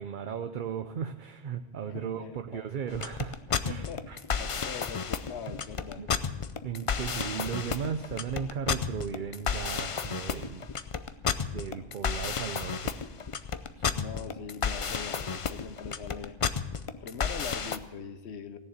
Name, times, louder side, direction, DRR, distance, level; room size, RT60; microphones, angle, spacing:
voice 1, 0.0-4.2 6.0-6.3 6.6-10.7 11.5-12.9 13.7-13.8, right 7 dB, 55° right, 8 dB, 0.7 m, -36 dB
voice 2, 1.9-2.7 3.7-6.1 13.9-16.4 17.0-18.6, left 6 dB, 85° left, 10 dB, 1.2 m, -42 dB
sound 1, 2.9-17.8, left 6 dB, 40° left, 0.5 m, -32 dB
16.5 x 7.1 x 8.3 m, 1.1 s
omnidirectional pair, 1.1 m